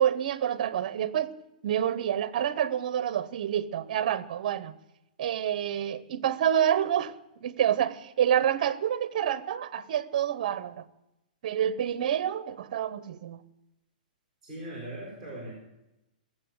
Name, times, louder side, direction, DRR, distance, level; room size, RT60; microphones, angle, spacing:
voice 1, 0.0-1.3 1.6-4.7 5.2-7.1 7.4-10.9 11.4-13.4, right 10 dB, 55° right, 0.9 m, -28 dB
voice 2, 14.4-15.5, right 1 dB, ahead, 5.5 m, -39 dB
17.5 x 7.5 x 7.9 m
hypercardioid pair, 155°, 5 cm